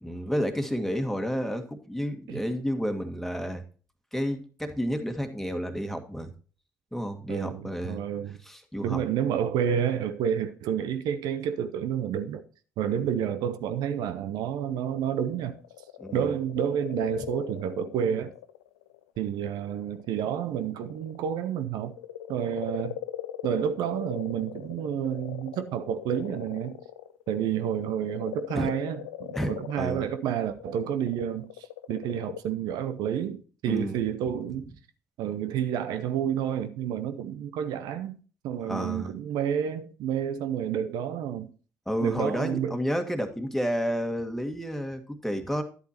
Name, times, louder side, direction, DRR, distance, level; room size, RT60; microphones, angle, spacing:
voice 1, 0.0-3.6 4.1-6.3 6.9-8.1 8.4-9.0 16.0-16.3 28.5-28.7 29.3-30.1 33.7-34.0 38.6-39.1 41.9-45.6, equal, 5° left, 1.8 m, -31 dB
voice 2, 7.3-8.4 8.8-12.4 12.8-15.6 16.1-18.3 19.2-21.9 22.3-23.0 23.4-26.8 27.3-34.7 35.2-38.2 38.4-41.5 42.0-42.8, right 9 dB, 70° right, 0.7 m, -30 dB
sound 1, 14.0-19.0 19.5-21.3 21.7-32.4, left 12 dB, 85° left, 0.4 m, -41 dB
11.0 x 8.2 x 2.9 m
hypercardioid pair, 50°, 7 cm